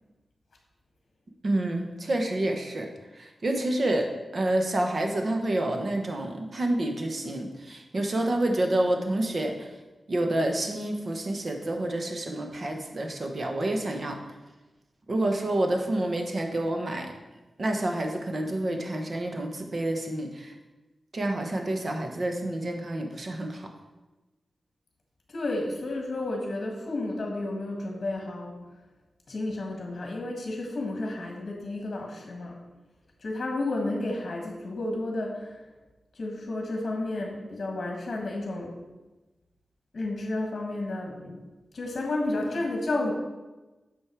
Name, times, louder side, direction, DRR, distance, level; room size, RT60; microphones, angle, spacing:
voice 1, 1.4-2.9 3.2-9.7 10.1-14.2 15.1-17.1 17.6-20.5 21.1-23.7, right 1 dB, 40° right, 3 dB, 1.0 m, -28 dB
voice 2, 25.3-28.6 29.3-32.6 33.2-35.7 36.1-38.8 39.9-41.4 41.7-43.1, left 2 dB, 50° left, 0 dB, 1.6 m, -31 dB
9.0 x 6.4 x 4.6 m, 1.1 s
wide cardioid pair, 160°, 0 cm